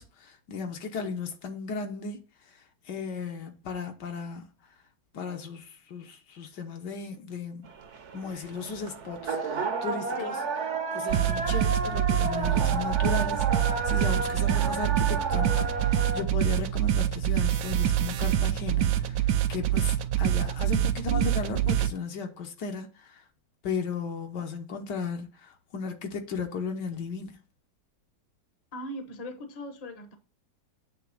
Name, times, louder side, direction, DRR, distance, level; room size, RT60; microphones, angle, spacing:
voice 1, 0.0-2.2 2.9-4.5 5.1-7.7 8.1-10.4 10.9-23.2 23.6-27.4, left 5 dB, 70° left, 1.6 m, -35 dB
sound 1, 7.7-16.2, right 4 dB, 50° right, 1.0 m, -32 dB
sound 2, 11.1-21.9, right 11 dB, 80° right, 1.2 m, -26 dB
voice 2, 28.7-30.2, left 1 dB, 30° left, 0.8 m, -39 dB
8.2 x 3.4 x 6.3 m
omnidirectional pair, 1.9 m